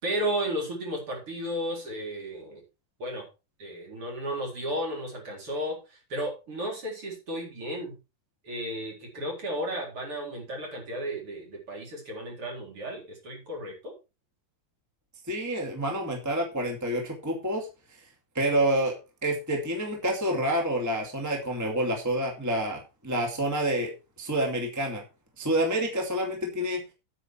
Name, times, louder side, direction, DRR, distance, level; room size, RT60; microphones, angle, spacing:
voice 1, 0.0-2.6 3.0-3.3 3.6-8.0 8.4-13.9, equal, 35° right, -1 dB, 4.6 m, -33 dB
voice 2, 15.3-17.7 18.3-18.9 19.2-23.9 24.2-25.0 25.4-26.8, right 1 dB, 5° right, 1 dB, 1.5 m, -28 dB
9.1 x 8.9 x 4.5 m, 0.29 s
omnidirectional pair, 4.3 m